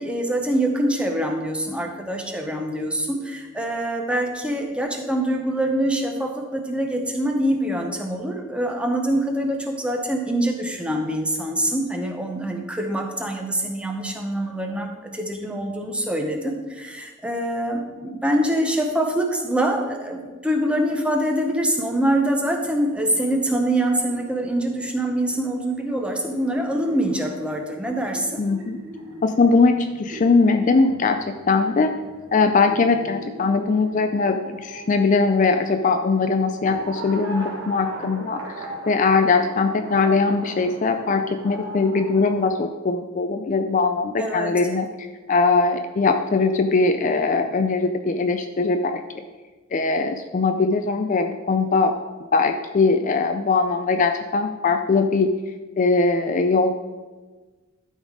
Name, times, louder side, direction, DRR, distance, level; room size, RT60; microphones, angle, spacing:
voice 1, 0.0-28.4 44.2-44.5, right 1 dB, 5° right, 3 dB, 0.7 m, -24 dB
sound 1, 22.6-42.5, right 1 dB, 65° right, 1.5 m, -39 dB
voice 2, 28.4-28.8 29.2-31.9 32.3-44.9 45.3-49.0 49.7-51.9 52.3-55.3 55.8-56.8, left 4 dB, 35° left, 7 dB, 0.4 m, -21 dB
12.0 x 4.0 x 4.8 m, 1.3 s
head